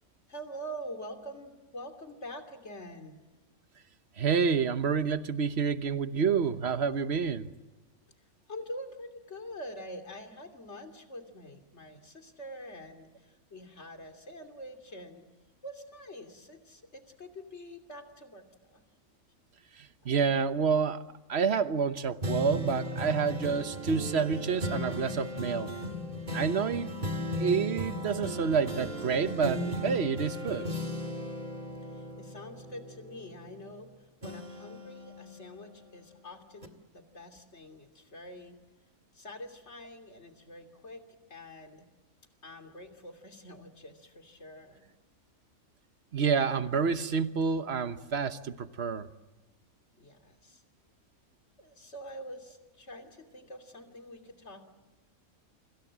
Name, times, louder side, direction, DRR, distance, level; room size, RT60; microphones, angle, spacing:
voice 1, 0.3-3.2 8.5-15.3 15.6-18.8 20.0-20.3 31.8-38.6 39.1-41.0 41.3-41.9 42.4-44.8 50.0-50.6 51.6-54.6, equal, 50° left, 5 dB, 3.2 m, -45 dB
voice 2, 4.2-7.5 19.8-21.0 21.3-25.7 26.3-26.9 27.4-30.7 46.1-49.1, right 6 dB, 50° right, 11 dB, 1.3 m, -28 dB
sound 1, 22.2-33.9 34.2-36.1 36.6-36.7, equal, 30° right, 2.1 m, -36 dB
29.5 x 25.5 x 7.5 m, 1.1 s
omnidirectional pair, 1.6 m